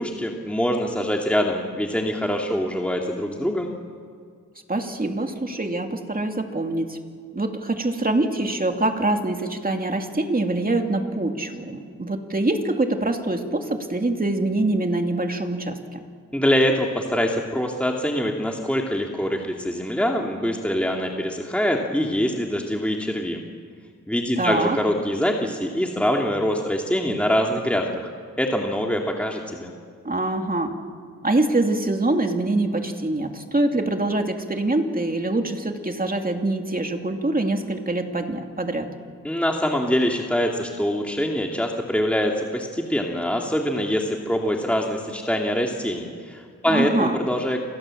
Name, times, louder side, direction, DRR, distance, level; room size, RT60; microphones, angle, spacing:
voice 1, 0.0-3.7 16.3-23.4 24.1-28.1 28.4-29.7 39.2-47.6, equal, 5° left, 1 dB, 2.3 m, -24 dB
voice 2, 4.7-7.0 7.3-16.0 24.4-24.8 30.0-30.8 31.2-38.9 46.7-47.3, right 2 dB, 25° right, 4 dB, 2.7 m, -24 dB
29.0 x 27.0 x 7.6 m, 2.2 s
wide cardioid pair, 90°, 32 cm